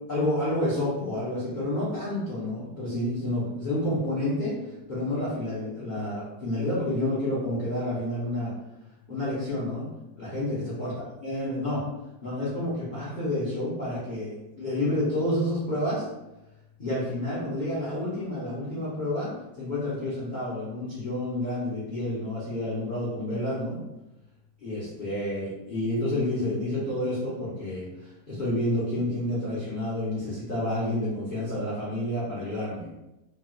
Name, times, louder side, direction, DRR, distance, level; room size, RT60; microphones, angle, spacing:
voice 1, 0.1-4.6 4.9-8.5 9.1-9.9 10.1-10.9 11.2-11.8 12.2-16.1 16.8-19.3 19.6-23.8 24.6-32.9, left 1 dB, 50° left, -10 dB, 0.5 m, -29 dB
3.1 x 3.1 x 2.2 m, 0.94 s
omnidirectional pair, 2.1 m